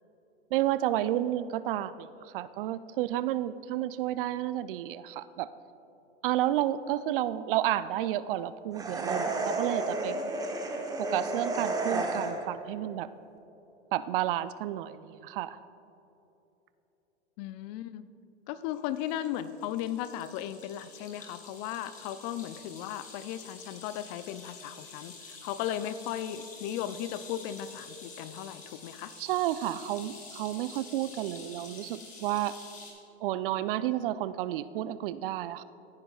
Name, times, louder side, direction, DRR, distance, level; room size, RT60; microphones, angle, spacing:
voice 1, 0.5-5.5 6.2-10.2 11.0-13.1 13.9-15.6 29.2-32.6 33.2-35.6, right 13 dB, 55° right, 15 dB, 0.4 m, -31 dB
sound 1, 8.7-12.6, right 2 dB, 10° right, 1.0 m, -32 dB
voice 2, 17.4-18.0 18.5-29.1, left 11 dB, 40° left, 14 dB, 0.4 m, -36 dB
sound 2, 18.7-32.9, left 4 dB, 25° left, 2.4 m, -49 dB
16.0 x 9.8 x 2.4 m, 3.0 s
hypercardioid pair, 110°, 34 cm